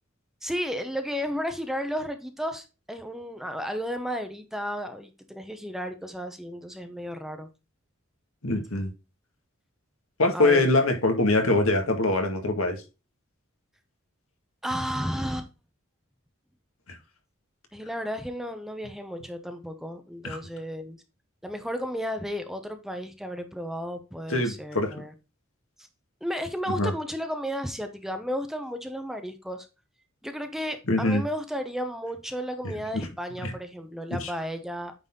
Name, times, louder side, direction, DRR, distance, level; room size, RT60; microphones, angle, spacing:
voice 1, 0.4-7.5 10.3-10.7 14.6-15.5 17.7-21.0 21.4-25.1 26.2-29.7 30.2-34.9, equal, ahead, 7 dB, 0.8 m, -33 dB
voice 2, 8.4-8.9 10.2-12.8 16.9-17.0 20.2-20.4 24.3-24.9 26.8-26.9 30.9-31.2 32.6-33.1 33.4-33.5 34.1-34.3, left 2 dB, 80° left, 5 dB, 1.9 m, -24 dB
9.0 x 4.1 x 3.7 m, 0.29 s
head